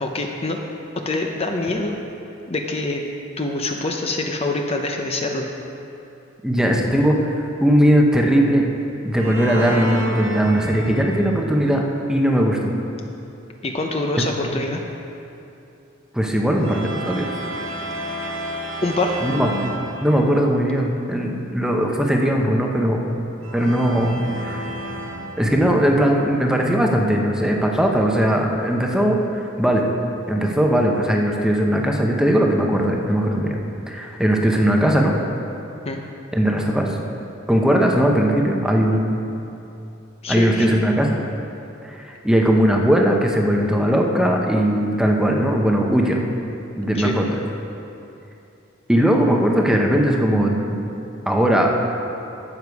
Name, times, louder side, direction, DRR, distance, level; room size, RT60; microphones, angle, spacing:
voice 1, 0.0-0.6 1.0-2.0 2.5-3.0 3.4-5.5 13.6-14.8 18.8-19.3 35.9-36.0 40.2-40.8 47.0-47.2, left 2 dB, 30° left, 2 dB, 0.6 m, -25 dB
voice 2, 6.4-7.4 7.6-8.7 9.0-11.8 12.1-12.7 16.1-17.3 19.2-19.5 20.0-23.0 23.5-24.7 25.4-29.9 30.3-33.6 33.9-35.1 36.3-37.0 37.5-39.2 40.3-41.2 41.8-46.2 46.8-47.4 48.9-50.8 51.3-51.8, equal, 5° right, 0 dB, 0.8 m, -19 dB
sound 1, 9.1-11.6 16.6-20.6 23.4-25.9, right 1 dB, 80° right, 1.3 m, -31 dB
12.0 x 8.1 x 4.7 m, 2.8 s
head